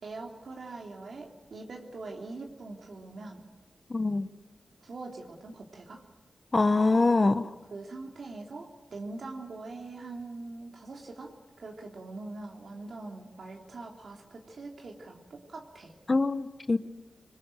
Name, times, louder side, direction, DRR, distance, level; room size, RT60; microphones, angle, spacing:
voice 1, 0.0-3.4 4.8-6.0 7.1-7.4 7.7-11.3 11.6-15.9, right 3 dB, 70° right, 0 dB, 3.1 m, -43 dB
voice 2, 3.9-4.3 6.5-7.4 16.1-16.8, left 3 dB, 35° left, 12 dB, 1.1 m, -24 dB
25.5 x 21.5 x 9.2 m, 1.2 s
cardioid pair, 70°, 0 cm